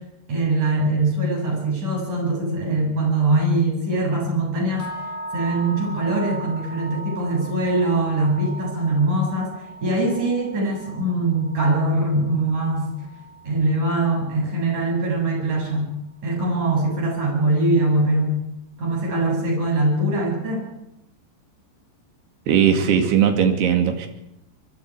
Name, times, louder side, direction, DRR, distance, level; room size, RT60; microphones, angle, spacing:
voice 1, 0.3-4.9 5.3-9.5 9.8-12.9 13.4-15.9 16.2-18.4 18.8-20.7, right 2 dB, 40° right, 0 dB, 8.8 m, -22 dB
sound 1, 4.8-14.9, right 2 dB, 15° left, 3.7 m, -38 dB
voice 2, 22.5-24.1, right 8 dB, 65° right, 5 dB, 4.1 m, -18 dB
26.0 x 23.0 x 4.9 m, 0.84 s
omnidirectional pair, 5.3 m